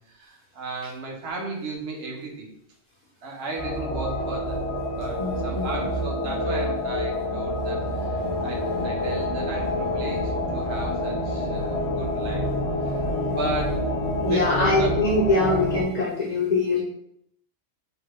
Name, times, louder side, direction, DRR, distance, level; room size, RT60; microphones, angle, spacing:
voice 1, 0.0-2.5 3.2-4.6 4.9-12.5 12.8-13.8 14.3-14.9, right 3 dB, 70° right, -1 dB, 0.9 m, -35 dB
sound 1, 3.6-15.8, left 1 dB, 80° left, 0.8 m, -27 dB
voice 2, 5.2-6.1 13.3-13.8 14.2-16.8, left 2 dB, 55° left, -4 dB, 0.5 m, -24 dB
3.3 x 2.1 x 2.9 m, 0.73 s
omnidirectional pair, 1.1 m